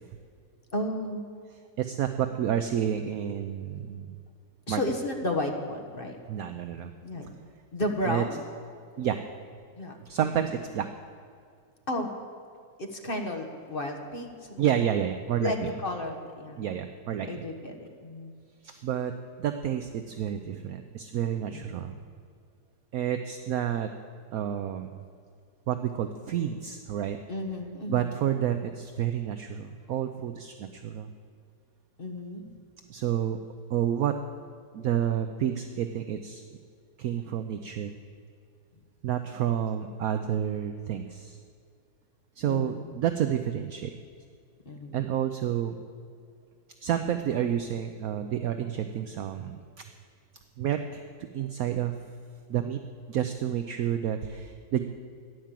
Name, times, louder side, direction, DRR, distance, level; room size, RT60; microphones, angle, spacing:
voice 1, 0.7-1.2 4.7-6.2 7.0-7.3 7.7-8.5 9.8-10.0 11.9-12.1 12.8-14.8 15.4-16.6 17.2-18.3 18.7-18.8 21.4-22.0 27.3-28.2 32.0-32.5 42.4-42.9 44.6-45.1, left 1 dB, 35° left, 3 dB, 1.4 m, -33 dB
voice 2, 1.8-4.2 4.7-4.8 6.3-6.9 8.1-8.2 9.0-9.2 10.1-10.9 14.6-15.5 16.6-17.3 18.8-19.1 19.4-21.9 22.9-23.9 24.3-25.0 25.7-27.2 27.9-31.1 32.9-33.4 33.7-34.1 34.7-36.4 37.0-37.9 39.0-41.3 42.4-43.9 44.9-45.7 46.8-49.6 50.6-51.0 51.3-51.9 52.5-52.8 53.1-54.8, right 10 dB, 65° right, 8 dB, 1.0 m, -29 dB
14.0 x 10.5 x 7.5 m, 2.3 s
omnidirectional pair, 1.8 m